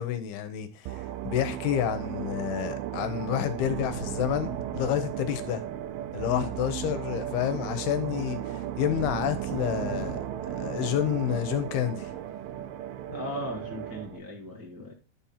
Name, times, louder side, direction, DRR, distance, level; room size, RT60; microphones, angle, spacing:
voice 1, 0.0-5.6 6.1-10.2 10.5-12.1, left 11 dB, 80° left, 2.9 m, -29 dB
sound 1, 0.9-14.2, right 11 dB, 85° right, 2.6 m, -35 dB
voice 2, 13.1-14.9, left 1 dB, 15° right, 0.6 m, -37 dB
9.9 x 4.4 x 5.6 m
omnidirectional pair, 4.5 m